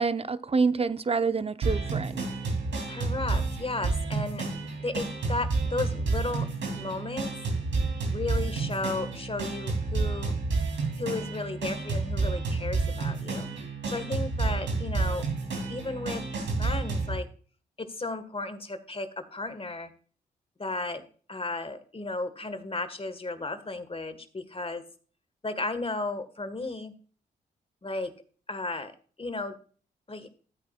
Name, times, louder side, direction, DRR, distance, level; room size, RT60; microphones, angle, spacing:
voice 1, 0.0-2.3, right 4 dB, 30° right, 13 dB, 0.6 m, -27 dB
drums and guitar, 1.6-17.2, right 3 dB, 80° right, 2.9 m, -30 dB
voice 2, 2.9-4.4 4.8-6.5 6.8-7.3 8.1-10.3 11.0-13.5 13.9-15.2 15.7-16.2 16.6-17.3 17.8-19.9 20.6-21.0 21.3-24.8 25.4-26.9 27.8-28.1 28.5-28.9 29.2-29.6 30.1-30.3, left 3 dB, 30° left, 11 dB, 1.5 m, -34 dB
13.0 x 8.7 x 2.4 m, 0.42 s
supercardioid pair, 45°, 19 cm